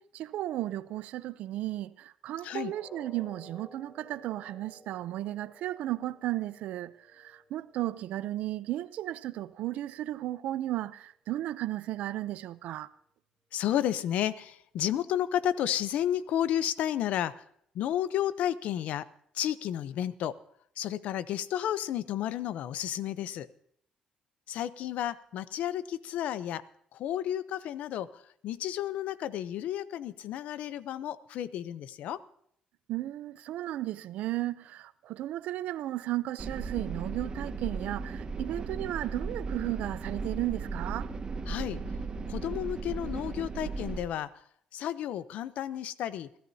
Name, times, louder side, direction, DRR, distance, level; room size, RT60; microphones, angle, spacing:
voice 1, 0.0-12.9 32.9-41.1, right 15 dB, 90° right, 0.5 m, -34 dB
sound 1, 2.7-8.7 9.0-9.2 9.7-9.8, equal, 25° left, 8.0 m, -55 dB
voice 2, 13.5-17.4 17.7-19.1 19.3-20.4 20.8-23.5 24.5-26.6 26.9-32.2 41.5-41.8 42.3-44.3 44.7-46.3, left 11 dB, 85° left, 0.6 m, -32 dB
sound 2, 36.4-44.0, right 4 dB, 35° right, 1.6 m, -36 dB
28.5 x 13.5 x 2.8 m
cardioid pair, 115°, 2 cm